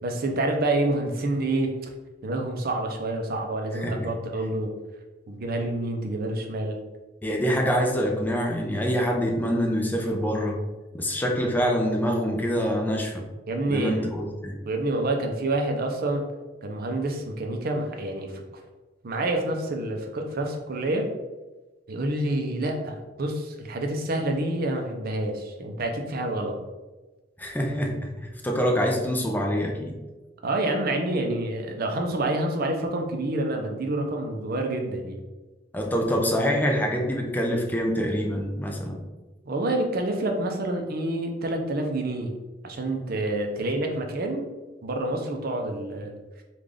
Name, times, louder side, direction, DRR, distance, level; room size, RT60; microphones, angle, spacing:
voice 1, 0.0-1.7 2.2-4.7 5.3-6.8 13.5-14.1 14.6-16.2 16.6-18.4 19.0-21.1 21.9-26.6 30.4-35.2 39.5-42.3 42.6-44.5 44.8-46.1, right 2 dB, 55° right, 3 dB, 0.6 m, -28 dB
voice 2, 3.7-4.1 7.2-10.6 10.9-13.2 13.7-14.6 27.4-29.9 35.7-39.0, equal, 10° left, 0 dB, 0.4 m, -25 dB
3.7 x 2.4 x 3.2 m, 1.2 s
head